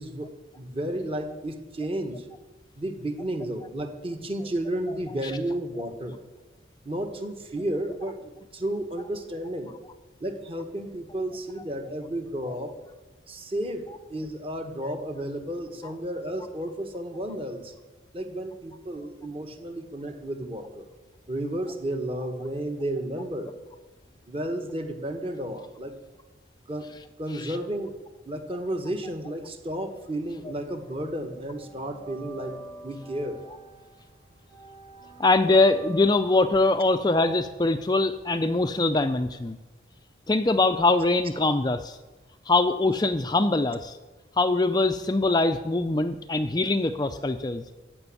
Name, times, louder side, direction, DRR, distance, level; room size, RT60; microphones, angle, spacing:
voice 1, 0.0-2.3 2.8-6.2 6.8-9.7 10.2-12.8 13.3-17.7 18.1-20.9 21.3-23.5 24.3-25.9 26.7-26.9 27.2-28.0 28.2-33.4, right 1 dB, 30° right, 5 dB, 1.4 m, -32 dB
sound 1, 29.7-30.8 31.1-39.0, right 2 dB, 50° right, 4.4 m, -45 dB
voice 2, 35.2-39.6 40.3-42.0 42.5-44.0 44.4-47.6, left 2 dB, 20° left, 9 dB, 0.4 m, -23 dB
15.0 x 6.1 x 9.8 m, 1.2 s
head